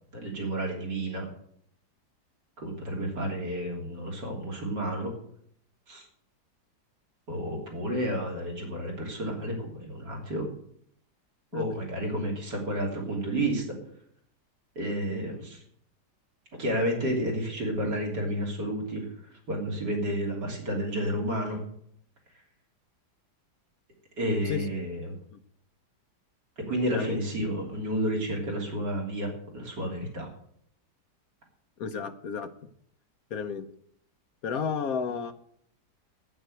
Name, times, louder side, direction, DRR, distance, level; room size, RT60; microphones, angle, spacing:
voice 1, 0.1-1.3 2.6-5.1 5.9-6.1 7.3-10.5 11.5-13.6 14.8-15.6 16.6-19.1 19.5-21.6 24.2-25.1 26.7-30.3, right 1 dB, 80° right, 0 dB, 3.8 m, -31 dB
voice 2, 31.8-32.5 33.3-33.7 34.4-35.3, left 6 dB, 60° left, 9 dB, 1.3 m, -32 dB
9.0 x 8.8 x 7.9 m, 0.67 s
omnidirectional pair, 1.8 m